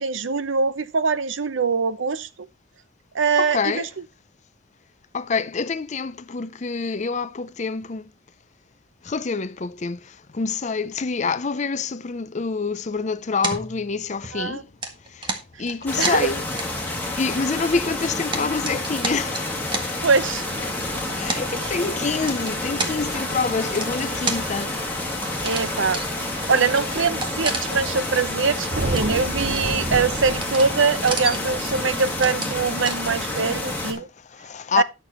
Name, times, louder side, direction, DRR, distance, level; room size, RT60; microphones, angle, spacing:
voice 1, 0.0-2.3 3.1-3.9 14.3-14.6 16.0-16.3 20.0-20.5 21.6-21.8 25.4-26.0 26.5-34.1 34.8-34.9, right 5 dB, 80° right, 0.8 m, -23 dB
voice 2, 3.4-3.9 5.1-8.1 9.0-14.7 15.0-16.4 16.8-19.7 21.1-24.8 33.9-34.8, left 4 dB, 35° left, 0.5 m, -27 dB
sound 1, 13.4-14.4 14.8-17.0 17.3-17.4 18.0-19.9 20.7-20.8 21.3-21.4 22.2-22.9 23.8-24.5 25.3-25.6 25.9-26.1 26.4-26.5 26.7-28.0 28.3-28.4 28.8-29.2 29.6-30.0 30.4-30.7 30.9-31.5 32.0-32.6 32.8-33.0, right 3 dB, 25° right, 1.5 m, -30 dB
sound 2, 15.9-33.9, left 2 dB, 10° left, 2.6 m, -29 dB
sound 3, 20.2-32.4, right 2 dB, 40° right, 0.9 m, -35 dB
10.5 x 6.8 x 4.3 m
head